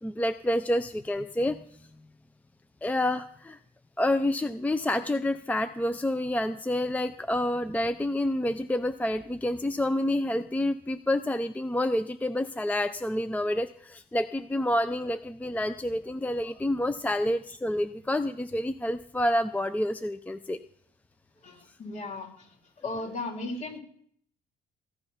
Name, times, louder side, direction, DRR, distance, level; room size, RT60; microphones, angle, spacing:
voice 1, 0.0-1.8 2.8-3.6 4.0-20.6, left 1 dB, 10° left, 11 dB, 0.5 m, -28 dB
voice 2, 21.4-22.6 22.8-23.8, left 2 dB, 45° left, 2 dB, 3.5 m, -36 dB
15.0 x 10.5 x 5.7 m, 0.64 s
cardioid pair, 110°, 17 cm